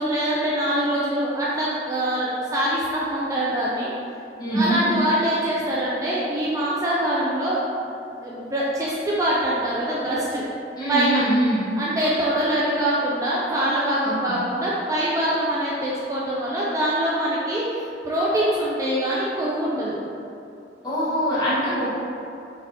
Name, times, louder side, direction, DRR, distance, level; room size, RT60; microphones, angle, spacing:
voice 1, 0.0-3.9 4.5-7.9 8.2-10.4 10.9-11.2 11.8-19.9, right 1 dB, 20° right, -7 dB, 0.4 m, -24 dB
voice 2, 4.4-4.8 10.8-11.6 14.0-14.4 20.8-22.0, right 1 dB, 25° left, -11 dB, 1.2 m, -23 dB
4.0 x 3.5 x 2.8 m, 2.7 s
head